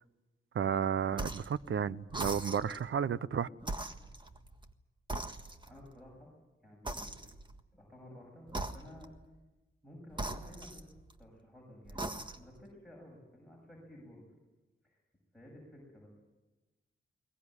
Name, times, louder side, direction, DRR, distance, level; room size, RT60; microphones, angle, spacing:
voice 1, 0.5-3.5, right 8 dB, 75° right, 0.7 m, -32 dB
sound 1, 1.1-1.6 2.1-2.9 3.6-4.7 5.1-5.9 6.8-7.6 8.5-9.2 10.1-11.2 11.8-12.6, right 2 dB, 20° right, 1.5 m, -40 dB
voice 2, 5.7-6.3 6.6-7.3 7.7-9.1 9.8-10.9 11.2-14.2 14.8-15.0 15.3-16.1, left 1 dB, ahead, 6.8 m, -53 dB
22.0 x 19.0 x 9.8 m
wide cardioid pair, 95°, 21 cm